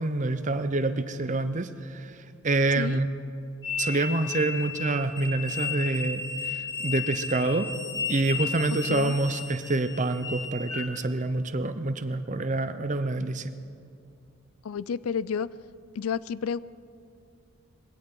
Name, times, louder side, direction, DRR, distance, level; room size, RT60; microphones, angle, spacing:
voice 1, 0.0-2.1 2.4-3.1 3.8-7.7 8.1-13.5, right 2 dB, 35° right, 11 dB, 0.7 m, -27 dB
sound 1, 3.6-10.8, left 5 dB, 15° left, 3.0 m, -34 dB
voice 2, 14.6-15.5 16.0-16.6, left 6 dB, 80° left, 18 dB, 0.4 m, -30 dB
21.0 x 16.5 x 3.8 m, 2.6 s
head